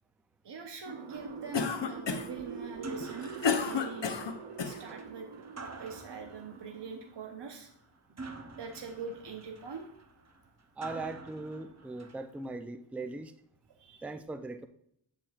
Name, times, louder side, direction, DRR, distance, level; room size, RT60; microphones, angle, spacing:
voice 1, 0.4-4.2 4.6-5.3 5.8-7.7 8.1-8.2 8.5-9.9 13.7-14.1, right 5 dB, 55° right, 3 dB, 0.9 m, -43 dB
sound 1, 0.9-7.6, right 5 dB, 85° right, 0.8 m, -45 dB
sound 2, 1.1-12.5, right 3 dB, 30° right, 0.8 m, -48 dB
Cough, 1.5-2.4 3.0-4.8, left 5 dB, 60° left, 0.8 m, -31 dB
voice 2, 10.8-13.3 14.0-14.7, right 3 dB, 5° right, 9 dB, 0.4 m, -39 dB
8.5 x 7.4 x 2.4 m, 0.73 s
wide cardioid pair, 85°, 49 cm